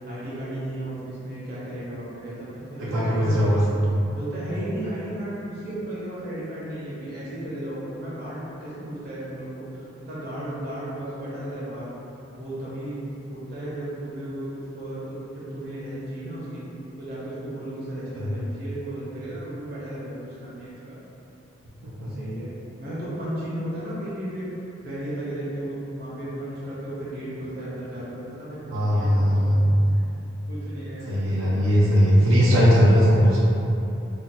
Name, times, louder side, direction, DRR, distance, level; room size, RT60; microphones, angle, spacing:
voice 1, 0.1-3.6 4.1-11.9 12.3-13.0 13.3-16.6 17.0-21.0 22.0-22.5 22.8-24.5 24.8-30.1 30.5-32.2, right 1 dB, 50° right, -9 dB, 0.8 m, -34 dB
voice 2, 2.8-3.6 18.1-18.3 21.8-22.1 28.7-29.6 31.1-33.6, equal, 90° right, -7 dB, 0.5 m, -19 dB
2.7 x 2.1 x 4.0 m, 2.9 s
head